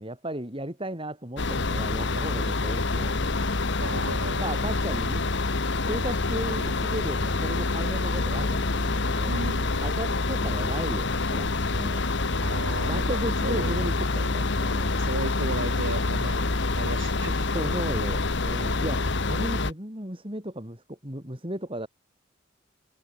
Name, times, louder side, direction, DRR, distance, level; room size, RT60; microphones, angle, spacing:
voice 1, 0.0-3.2 4.0-5.2 5.9-9.4 9.8-12.1 12.8-15.0 16.1-16.4 17.5-21.9, right 1 dB, 25° right, 7.1 m, -35 dB
sound 1, 1.4-19.7, left 3 dB, 60° left, 1.4 m, -27 dB
voice 2, 3.8-4.5 9.3-9.9 12.3-13.8 15.0-16.4 16.8-17.5, right 2 dB, 70° right, 3.1 m, -35 dB
head